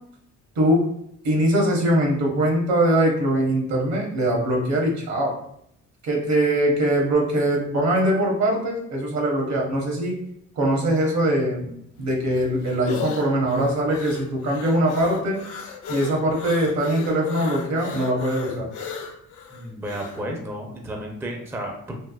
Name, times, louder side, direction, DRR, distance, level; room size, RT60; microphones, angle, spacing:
voice 1, 1.2-5.4 6.0-10.2 10.6-11.7 12.0-15.4 15.9-18.7, right 1 dB, 65° right, -1 dB, 1.0 m, -22 dB
sound 1, 12.0-20.2, left 6 dB, 80° left, 0.6 m, -36 dB
voice 2, 19.5-21.9, equal, 10° right, 1 dB, 0.4 m, -32 dB
3.3 x 2.4 x 2.3 m, 0.73 s
cardioid pair, 90°, 30 cm